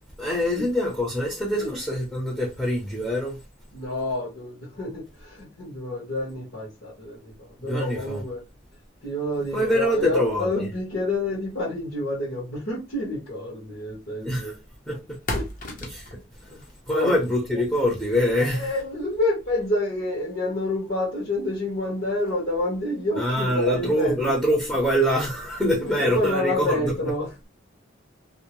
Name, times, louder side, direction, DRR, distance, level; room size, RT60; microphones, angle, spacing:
voice 1, 0.2-3.4 7.7-8.2 9.5-10.7 14.2-14.6 14.9-15.0 15.9-16.2 16.4-16.6 16.9-18.7 23.2-27.1, equal, 5° left, 0.6 m, -24 dB
voice 2, 3.7-8.4 9.0-14.6 15.3-15.5 16.5-16.6 16.9-17.1 18.4-24.3 25.8-27.5, left 1 dB, 65° left, 1.2 m, -28 dB
sound 1, 13.7-24.0, left 1 dB, 45° left, 0.7 m, -41 dB
2.6 x 2.0 x 3.0 m
head